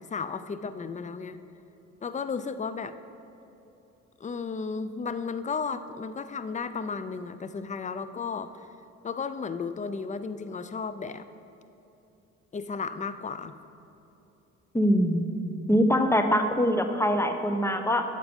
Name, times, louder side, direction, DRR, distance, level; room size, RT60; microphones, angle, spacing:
voice 1, 0.0-1.4 2.0-3.0 4.2-8.7 9.0-11.3 12.5-13.6, left 5 dB, 25° left, 12 dB, 0.5 m, -34 dB
voice 2, 14.7-15.2 15.7-18.0, equal, 10° left, 6 dB, 0.9 m, -23 dB
11.5 x 7.6 x 5.3 m, 3.0 s
cardioid pair, 90°, 30 cm